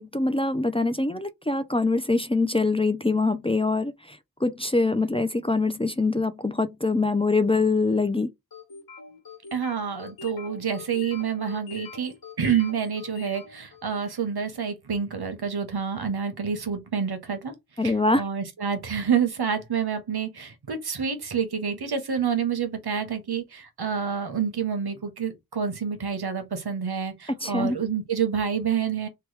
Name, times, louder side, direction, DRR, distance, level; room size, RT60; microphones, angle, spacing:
voice 1, 0.0-8.3 17.8-18.2 27.4-27.8, left 3 dB, 15° left, 0.3 m, -24 dB
sound 1, 8.5-14.2, left 4 dB, 70° left, 1.4 m, -44 dB
voice 2, 9.5-17.5 17.8-29.1, right 7 dB, 80° right, 0.8 m, -28 dB
2.9 x 2.2 x 3.1 m
wide cardioid pair, 50°, 37 cm